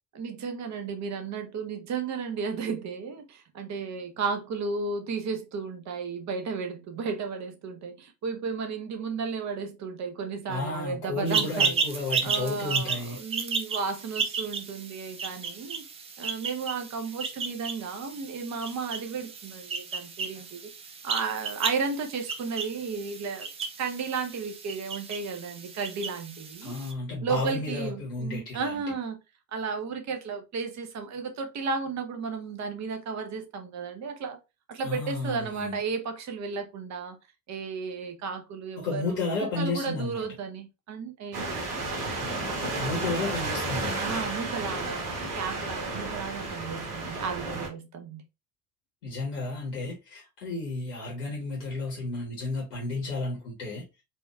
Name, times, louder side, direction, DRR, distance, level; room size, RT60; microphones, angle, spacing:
voice 1, 0.1-11.8 12.2-15.8 16.2-20.6 21.0-23.5 23.8-26.8 27.2-29.2 29.5-34.4 34.7-37.2 37.5-39.2 39.6-41.9 44.0-48.2, right 5 dB, 35° right, 0.8 m, -34 dB
voice 2, 10.5-13.2 26.6-28.8 34.8-35.8 38.8-40.3 42.6-44.0 49.0-53.8, left 3 dB, 75° left, 1.2 m, -32 dB
sound 1, 11.3-26.9, right 5 dB, 15° right, 0.3 m, -33 dB
sound 2, 41.3-47.7, right 2 dB, 75° right, 1.2 m, -32 dB
4.3 x 2.4 x 2.3 m
figure-of-eight pair, 60°, 47 cm